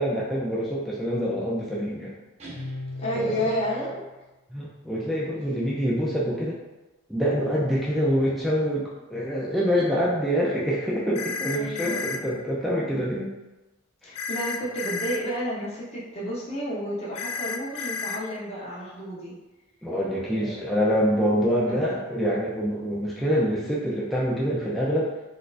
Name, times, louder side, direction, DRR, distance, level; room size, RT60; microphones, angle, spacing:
voice 1, 0.0-2.1 3.2-3.5 4.5-6.6 7.1-13.3 14.0-14.1 19.8-25.1, equal, ahead, -6 dB, 0.3 m, -26 dB
Guitar, 2.4-4.1, left 2 dB, 30° right, 0.7 m, -38 dB
voice 2, 3.0-4.0 11.5-12.0 14.0-19.3 20.2-20.7 21.7-22.0, equal, 30° left, -8 dB, 0.8 m, -31 dB
sound 1, 11.2-12.2 14.2-15.2 17.2-18.2, left 5 dB, 85° left, 0.3 m, -31 dB
4.1 x 2.4 x 2.4 m, 1.1 s
head